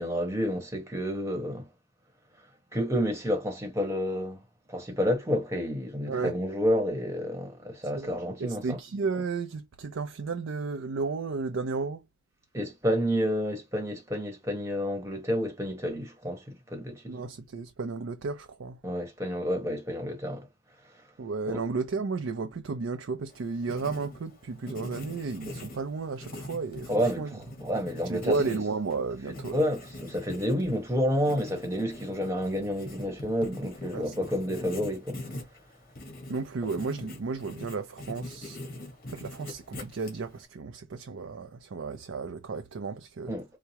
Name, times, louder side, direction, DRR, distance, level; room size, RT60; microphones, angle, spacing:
voice 1, 0.0-1.7 2.7-4.4 4.7-8.8 12.5-17.2 18.8-20.5 21.5-21.6 26.9-28.4 29.3-35.3 43.3-43.4, equal, 15° right, 1.2 m, -30 dB
voice 2, 8.4-12.0 17.1-18.8 21.2-26.9 27.2-27.3 28.0-29.6 33.9-34.1 36.3-38.6 39.1-43.3, right 4 dB, 75° right, 0.5 m, -33 dB
Writing, 23.3-40.5, left 1 dB, 45° left, 1.4 m, -43 dB
4.7 x 2.1 x 2.8 m
head